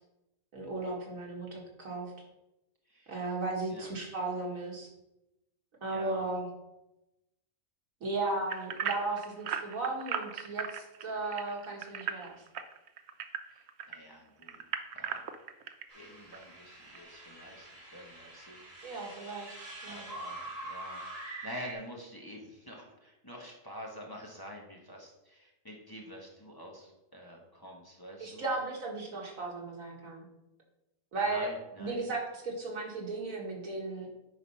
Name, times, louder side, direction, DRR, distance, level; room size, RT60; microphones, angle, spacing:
voice 1, 0.5-2.1 3.1-4.9 5.8-6.5 8.0-12.4 18.8-19.5 19.8-20.0 28.2-30.3 31.1-31.5 31.8-34.1, right 3 dB, 85° right, -1 dB, 2.1 m, -35 dB
voice 2, 5.9-6.2 13.5-14.7 14.9-15.3 15.9-18.9 19.9-28.4 31.2-32.0, equal, 15° left, -2 dB, 1.2 m, -47 dB
sound 1, 8.5-14.0 14.4-15.8 16.3-16.4 16.9-17.0, right 8 dB, 60° right, 0.8 m, -37 dB
sound 2, 15.9-21.7, right 2 dB, 20° right, 2.7 m, -45 dB
9.0 x 4.0 x 5.6 m, 0.92 s
omnidirectional pair, 1.4 m